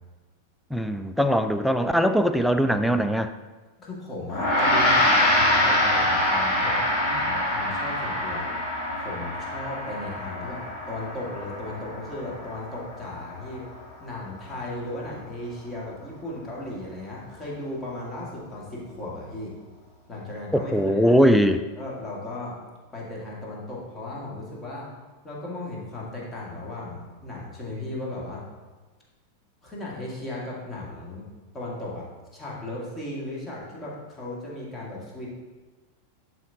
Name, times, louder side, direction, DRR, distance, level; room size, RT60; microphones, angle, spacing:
voice 1, 0.7-3.3 20.5-21.6, equal, ahead, 9 dB, 0.4 m, -21 dB
voice 2, 3.8-8.5 8.9-13.7 14.0-19.5 20.1-21.2 21.8-22.6 22.9-24.9 25.2-28.4 29.6-31.3 31.5-35.3, left 2 dB, 20° left, -5 dB, 2.1 m, -36 dB
Gong, 4.3-13.8, left 1 dB, 35° left, 1.8 m, -25 dB
11.0 x 4.9 x 2.9 m, 1.3 s
figure-of-eight pair, 90°, 0 cm